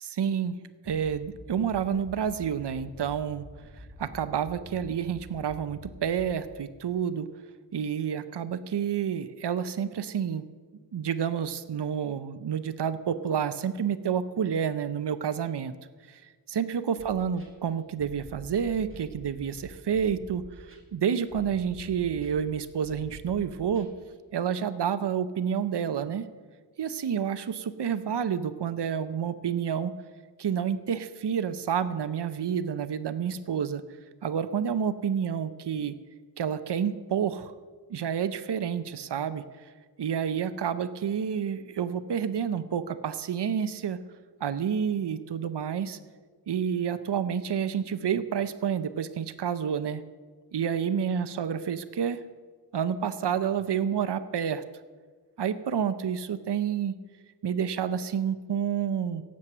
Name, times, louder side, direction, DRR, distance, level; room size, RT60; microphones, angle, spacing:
voice 1, 0.0-0.6 0.8-3.4 3.8-7.3 7.7-10.4 10.9-15.8 16.1-16.2 16.5-23.9 24.3-26.3 26.8-29.9 30.4-33.8 34.2-35.9 36.4-37.5 37.9-39.4 40.0-44.0 44.4-46.0 46.5-50.0 50.5-52.2 52.7-54.6 55.4-57.0 57.4-59.2, right 8 dB, 70° right, 12 dB, 0.7 m, -29 dB
sound 1, 0.8-6.7, left 1 dB, ahead, 4.3 m, -48 dB
sound 2, 17.0-24.2, right 1 dB, 30° right, 2.7 m, -48 dB
17.0 x 7.6 x 6.7 m, 1.5 s
cardioid pair, 45°, 42 cm